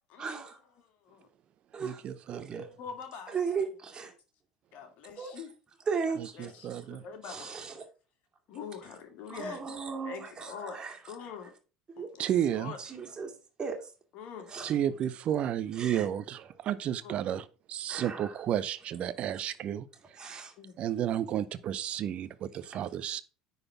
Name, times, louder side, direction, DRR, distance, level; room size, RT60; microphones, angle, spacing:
voice 1, 0.2-0.6 1.7-2.7 3.3-4.1 5.2-5.4 5.8-6.8 7.2-7.9 9.3-11.2 11.9-12.1 12.8-13.3 13.6-13.9 14.5-14.7 15.8-16.1 17.9-18.4 20.2-20.5 22.7-22.9, right 5 dB, 25° right, 2.4 m, -37 dB
voice 2, 1.8-2.6 6.4-7.0 12.2-12.7 14.6-20.4 20.8-23.2, right 10 dB, 45° right, 0.7 m, -32 dB
voice 3, 2.8-3.4 4.7-5.5 6.4-6.5 6.7-7.5 8.5-9.6 10.1-10.8 11.1-11.5 12.0-12.3 12.6-12.8 14.1-14.5 17.0-17.2 20.6-20.7, left 7 dB, 55° left, 2.0 m, -43 dB
9.8 x 4.1 x 5.8 m
figure-of-eight pair, 65°, 3 cm